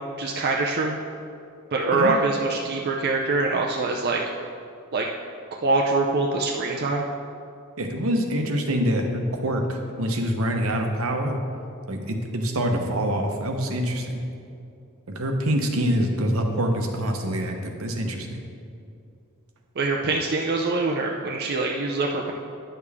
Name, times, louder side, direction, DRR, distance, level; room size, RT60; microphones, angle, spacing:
voice 1, 0.2-1.0 1.7-4.2 4.9-5.1 5.6-7.0 19.8-22.3, right 3 dB, 50° right, 0 dB, 0.5 m, -24 dB
voice 2, 7.8-11.4 11.9-14.2 15.1-18.4, equal, 75° right, 3 dB, 0.9 m, -25 dB
10.0 x 6.7 x 3.5 m, 2.5 s
head